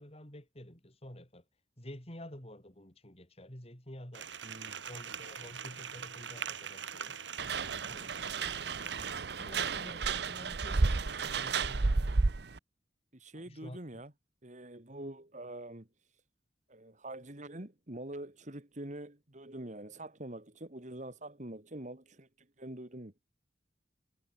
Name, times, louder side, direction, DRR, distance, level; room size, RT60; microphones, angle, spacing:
voice 1, 0.0-1.4 1.8-4.3 4.8-7.2 7.6-8.6 9.3-12.2 13.3-14.0, left 1 dB, 35° left, 5.7 m, -50 dB
sound 1, 4.1-9.1, right 7 dB, 85° right, 3.6 m, -43 dB
voice 2, 4.4-4.8 9.0-9.2 13.1-14.1 14.4-15.9 16.7-23.1, right 1 dB, 40° right, 2.4 m, -45 dB
sound 2, 7.4-12.6, right 4 dB, 60° right, 0.8 m, -32 dB
head